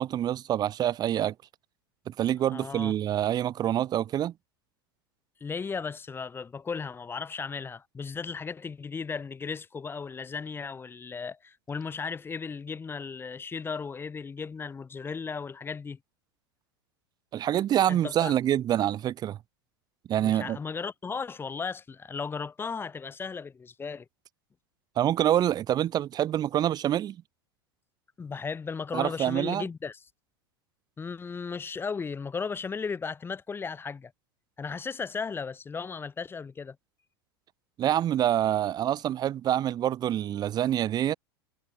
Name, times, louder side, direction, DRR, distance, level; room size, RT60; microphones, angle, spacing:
voice 1, 0.0-1.3 2.1-4.3 17.3-19.4 20.1-20.6 25.0-27.2 28.9-29.6 37.8-41.1, right 11 dB, 30° right, 2.2 m, -26 dB
voice 2, 2.5-2.9 5.4-16.0 17.9-18.3 20.2-24.1 28.2-30.0 31.0-34.1 34.6-36.8, left 5 dB, 15° left, 3.7 m, -36 dB
figure-of-eight pair, 85°, 13 cm